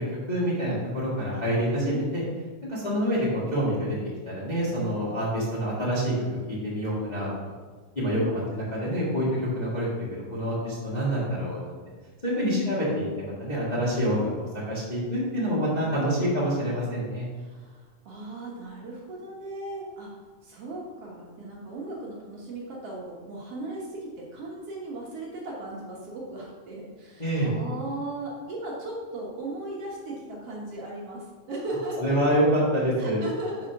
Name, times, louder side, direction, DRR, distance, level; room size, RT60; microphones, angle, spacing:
voice 1, 0.3-2.2 2.7-4.0 4.2-6.1 6.5-7.3 7.9-11.8 12.2-17.3 27.2-27.5 32.0-33.2, equal, 20° left, -8 dB, 1.2 m, -27 dB
voice 2, 2.8-3.2 5.1-5.2 8.0-8.5 12.4-13.0 17.4-20.1 20.4-32.4 33.0-33.7, right 2 dB, 60° right, -3 dB, 2.0 m, -37 dB
5.7 x 4.9 x 5.8 m, 1.5 s
omnidirectional pair, 3.4 m